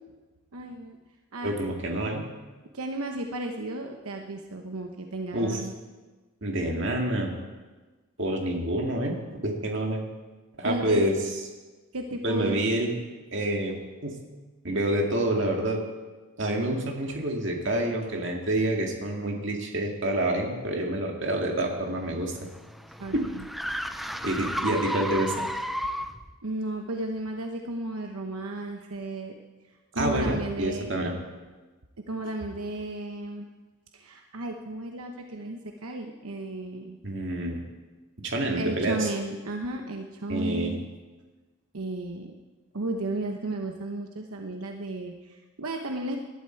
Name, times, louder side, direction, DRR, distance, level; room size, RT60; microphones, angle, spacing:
voice 1, 0.5-1.0 1.3-1.5 2.7-5.7 10.6-11.1 11.9-12.6 23.0-23.5 26.4-29.3 29.9-30.9 32.0-33.5 33.9-37.0 38.5-40.9 41.7-42.3 42.7-46.2, right 2 dB, 85° right, 3 dB, 1.0 m, -34 dB
voice 2, 1.4-2.3 5.3-5.6 6.4-7.3 8.2-9.1 9.4-10.0 10.6-11.1 12.2-13.0 13.3-13.8 14.0-14.2 14.6-15.8 16.4-22.3 23.1-23.2 24.0-25.3 30.0-31.1 37.0-37.6 38.2-39.1 40.3-40.7, right 1 dB, 55° right, 1 dB, 2.2 m, -27 dB
sound 1, 21.8-26.3, equal, ahead, 0.4 m, -33 dB
19.5 x 12.0 x 4.6 m, 1.3 s
head